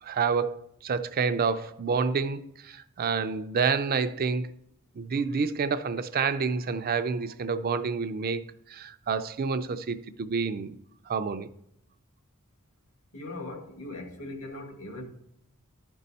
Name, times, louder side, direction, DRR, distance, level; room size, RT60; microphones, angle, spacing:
voice 1, 0.0-4.5 5.0-8.4 8.7-10.8 11.1-11.5, right 5 dB, 40° right, 0.4 m, -28 dB
voice 2, 13.1-15.0, left 2 dB, 70° left, 1.8 m, -39 dB
12.0 x 5.4 x 4.1 m
head